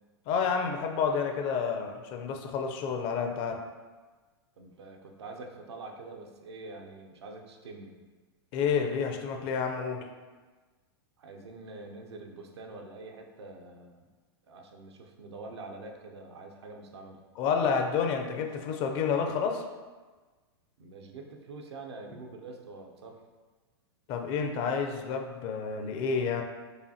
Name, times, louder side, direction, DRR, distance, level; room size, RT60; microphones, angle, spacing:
voice 1, 0.3-3.6 8.5-10.1 17.4-19.6 24.1-26.4, left 6 dB, 40° left, 4 dB, 0.4 m, -29 dB
voice 2, 4.6-8.1 11.2-14.1 14.5-17.2 20.8-23.2, right 3 dB, 80° right, 2 dB, 0.6 m, -45 dB
4.8 x 2.5 x 2.7 m, 1.3 s
hypercardioid pair, 120°, 14 cm